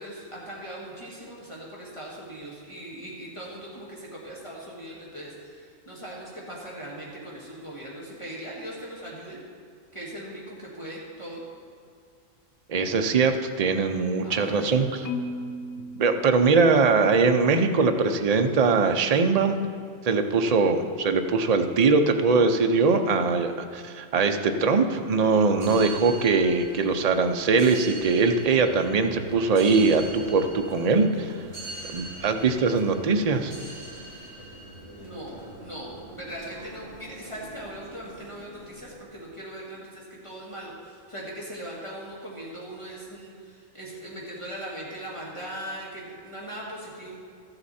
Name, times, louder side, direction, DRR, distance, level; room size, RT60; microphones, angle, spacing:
voice 1, 0.0-9.4 9.9-11.4 14.2-15.1 35.0-47.1, right 1 dB, 25° left, -6 dB, 1.8 m, -40 dB
voice 2, 12.7-15.1 16.0-19.6 20.0-31.3 31.9-33.5, right 4 dB, 45° right, 6 dB, 0.5 m, -22 dB
Marimba xylophone, 15.0-17.2, left 2 dB, 75° left, 0.3 m, -36 dB
sound 1, 25.5-39.0, right 2 dB, 20° right, 2.3 m, -43 dB
13.5 x 7.9 x 4.2 m, 2.2 s
omnidirectional pair, 1.4 m